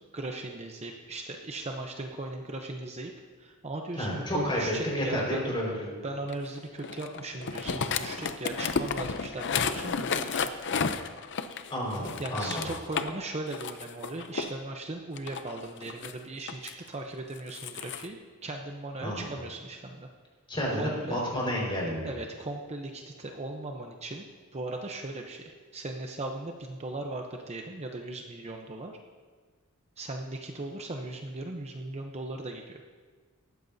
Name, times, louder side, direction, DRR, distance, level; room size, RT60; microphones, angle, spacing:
voice 1, 0.1-3.1 3.4-5.5 6.0-10.5 12.2-20.1 20.7-21.3 22.0-24.3 24.5-25.4 25.7-28.9 30.0-32.8, right 2 dB, 30° right, 2 dB, 0.8 m, -38 dB
voice 2, 4.0-6.0 11.7-12.7 19.0-19.3 20.5-22.1, equal, 25° left, -3 dB, 5.0 m, -31 dB
sound 1, 6.3-13.1 13.5-14.5 15.2-16.7 17.4-18.1, left 5 dB, 55° left, 0.6 m, -32 dB
19.5 x 14.0 x 2.7 m, 1.5 s
head